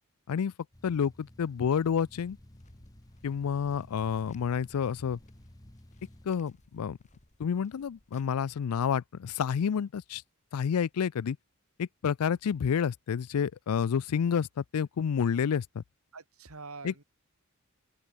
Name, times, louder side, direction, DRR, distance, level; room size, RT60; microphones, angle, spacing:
sound 1, 0.7-6.3, left 1 dB, 15° left, 1.2 m, -55 dB
voice 1, 0.8-2.4 3.2-5.2 6.2-7.0 7.4-10.2 10.5-11.4 11.8-15.8 16.8-17.0, left 7 dB, 90° left, 0.4 m, -29 dB
sound 2, 2.2-8.9, left 1 dB, 35° left, 2.1 m, -60 dB
voice 2, 16.1-17.0, right 4 dB, 80° right, 2.7 m, -45 dB
open air
head